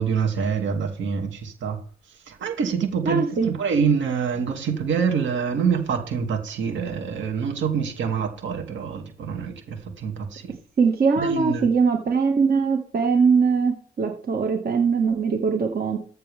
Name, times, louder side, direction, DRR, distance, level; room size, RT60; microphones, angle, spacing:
voice 1, 0.0-1.8 2.3-10.5 11.2-11.7, right 6 dB, 70° right, 2.7 m, -26 dB
voice 2, 3.1-3.5 10.8-16.0, right 5 dB, 50° right, 2.0 m, -21 dB
14.0 x 7.7 x 3.6 m
cardioid pair, 90°, 20 cm